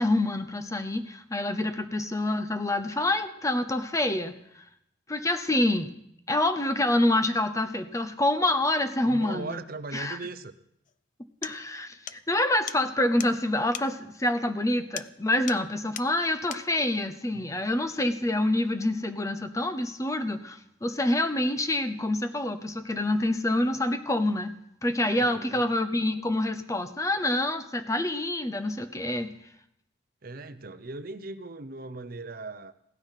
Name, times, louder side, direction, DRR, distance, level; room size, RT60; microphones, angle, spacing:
voice 1, 0.0-4.6 5.1-5.9 6.3-9.6 9.9-10.2 11.4-24.6 24.8-29.3, left 1 dB, 15° left, 10 dB, 0.7 m, -27 dB
voice 2, 9.1-10.5 17.4-17.6 25.0-25.6 30.2-32.7, right 3 dB, 45° right, 11 dB, 0.7 m, -39 dB
sound 1, 10.9-11.0 11.4-11.6 12.1-12.2 12.7-12.8 13.2-13.3 13.7-13.9 15.0-15.2 15.5-15.7 15.9-16.1 16.5-16.7, left 10 dB, 40° left, 0.4 m, -38 dB
16.5 x 12.0 x 5.8 m, 0.77 s
head